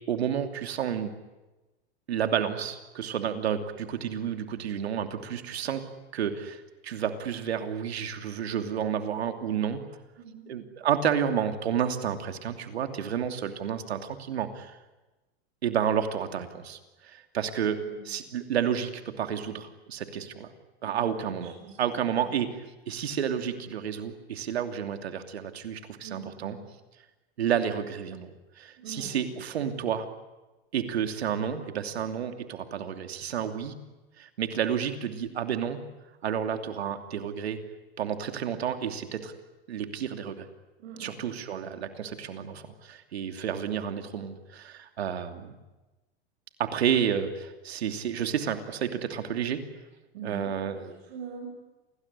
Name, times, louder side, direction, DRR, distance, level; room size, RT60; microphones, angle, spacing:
voice 1, 0.1-1.1 2.1-5.8 6.1-9.8 10.5-14.8 15.6-20.5 20.8-26.6 27.4-30.1 30.7-33.8 34.2-35.8 36.2-37.6 38.0-39.4 39.7-40.5 41.0-45.6 46.6-49.6 50.2-50.9, right 8 dB, 85° right, 7 dB, 2.8 m, -31 dB
voice 2, 10.2-10.5 17.8-18.0 20.8-21.3 21.6-21.7 26.0-26.6 28.8-29.2 40.8-41.3 50.1-51.5, right 6 dB, 70° right, -1 dB, 7.3 m, -43 dB
28.0 x 20.0 x 9.9 m, 1.1 s
hypercardioid pair, 105°, 31 cm